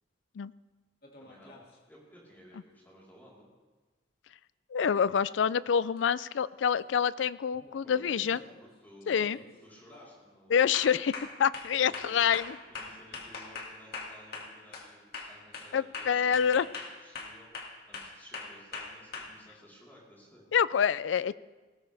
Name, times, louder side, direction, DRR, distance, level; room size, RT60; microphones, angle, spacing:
sound 1, 1.0-1.7 6.0-6.1 7.6-7.9 8.3-8.6 9.1-9.5 9.9-10.1 10.7-14.9 15.1-19.2, left 4 dB, 55° left, 2.2 m, -42 dB
voice 1, 1.2-3.5 7.8-10.8 11.8-12.2 12.7-17.6 17.9-20.5, equal, 10° left, -6 dB, 3.9 m, -55 dB
voice 2, 4.7-8.4 9.1-9.4 10.5-11.1 11.4-12.6 15.7-16.7 20.5-21.4, left 7 dB, 80° left, 18 dB, 0.4 m, -27 dB
19.0 x 17.5 x 3.4 m, 1.3 s
head